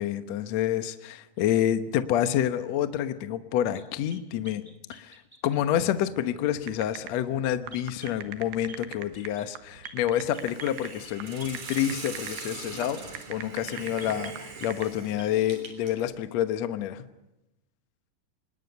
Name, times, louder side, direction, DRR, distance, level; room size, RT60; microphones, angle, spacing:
voice 1, 0.0-4.6 4.9-5.2 5.4-17.0, left 11 dB, 75° left, 10 dB, 1.5 m, -28 dB
sound 1, 3.7-5.7 7.7-8.2 8.7-8.9 9.1-9.5 9.8-13.1 13.7-14.9 15.2-15.5, right 2 dB, 5° right, 2.4 m, -50 dB
sound 2, 6.6-14.9, right 9 dB, 80° right, 3.3 m, -41 dB
Hiss, 10.3-16.1, right 4 dB, 45° right, 4.5 m, -42 dB
26.0 x 20.5 x 6.9 m, 0.94 s
omnidirectional pair, 4.6 m